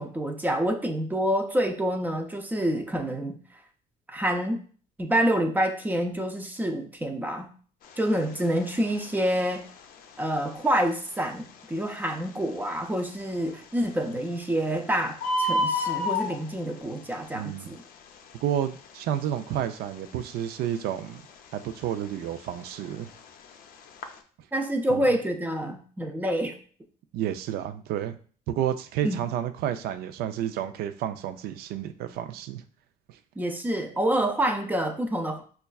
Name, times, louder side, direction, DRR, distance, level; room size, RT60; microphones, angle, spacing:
voice 1, 0.0-3.4 4.1-4.6 5.0-7.5 8.0-9.6 10.2-17.8 24.5-26.6 29.0-29.2 33.4-35.4, right 1 dB, 10° right, 5 dB, 0.4 m, -27 dB
Bird, 7.8-24.2, left 1 dB, 60° left, 0.5 m, -35 dB
voice 2, 17.3-17.7 18.4-21.2 21.5-23.1 24.9-25.0 27.1-28.2 28.5-32.6 33.1-33.2, right 10 dB, 70° right, 11 dB, 0.4 m, -30 dB
5.3 x 2.3 x 2.3 m, 0.43 s
cardioid pair, 130°, 17 cm